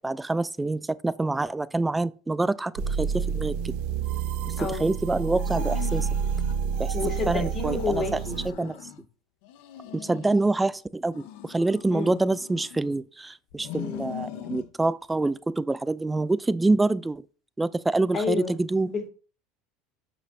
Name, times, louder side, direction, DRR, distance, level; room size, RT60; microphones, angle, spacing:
voice 1, 0.0-2.7 3.0-3.8 4.8-6.1 6.8-6.9 7.3-8.2 8.5-8.8 9.9-17.2 17.6-18.9, right 2 dB, 10° right, 0.4 m, -26 dB
sound 1, 2.8-8.5, right 7 dB, 70° right, 1.0 m, -29 dB
voice 2, 4.6-4.9 6.9-8.4 11.9-12.2 18.1-18.6 18.8-19.1, left 4 dB, 35° left, 2.7 m, -30 dB
sound 2, 5.3-6.6 7.0-9.0 9.4-10.7 11.1-13.0 13.5-14.7, left 11 dB, 70° left, 0.9 m, -41 dB
7.7 x 6.2 x 2.7 m
supercardioid pair, 100°, 0 cm